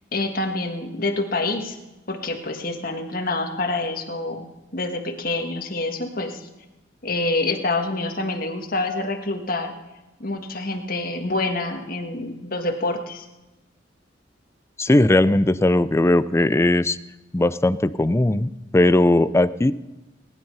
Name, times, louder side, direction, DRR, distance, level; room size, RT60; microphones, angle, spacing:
voice 1, 0.1-1.8 2.1-4.5 4.7-6.4 7.0-9.7 10.2-13.3, left 2 dB, 50° left, 4 dB, 1.6 m, -27 dB
voice 2, 14.8-17.0 17.3-19.7, left 1 dB, 15° left, 15 dB, 0.4 m, -18 dB
19.5 x 10.5 x 5.5 m, 1.1 s
head